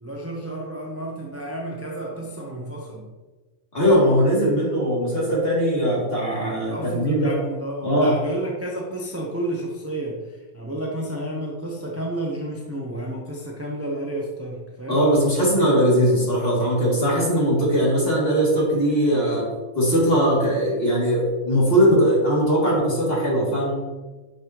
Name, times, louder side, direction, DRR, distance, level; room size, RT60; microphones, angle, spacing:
voice 1, 0.0-3.1 6.7-15.0, right 1 dB, 10° right, -2 dB, 0.8 m, -31 dB
voice 2, 3.7-7.4 7.8-8.1 14.9-19.4 19.7-23.7, equal, 40° left, -6 dB, 2.9 m, -20 dB
9.6 x 5.6 x 3.0 m, 1.2 s
omnidirectional pair, 1.5 m